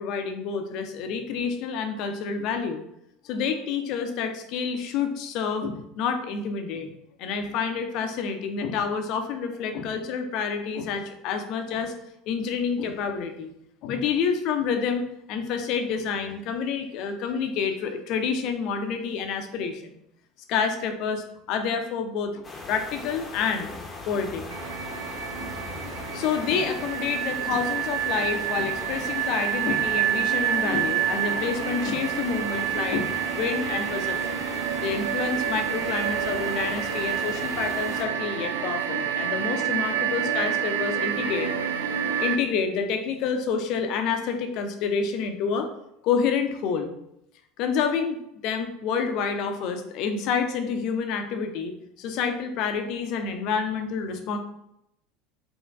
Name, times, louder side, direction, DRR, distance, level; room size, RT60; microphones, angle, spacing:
voice 1, 0.0-2.8 3.2-6.9 7.2-11.9 12.3-13.5 13.8-20.0 20.5-22.4 22.7-23.7 24.1-24.4 25.4-25.5 26.1-34.4 34.8-41.5 42.2-45.7 46.0-46.9 47.6-54.4, left 6 dB, 50° left, 6 dB, 0.6 m, -28 dB
sound 1, 22.4-38.0, left 3 dB, 20° left, 0.9 m, -39 dB
sound 2, 24.5-42.4, right 9 dB, 65° right, 0.4 m, -28 dB
4.4 x 3.1 x 3.5 m, 0.80 s
figure-of-eight pair, 70°, 0 cm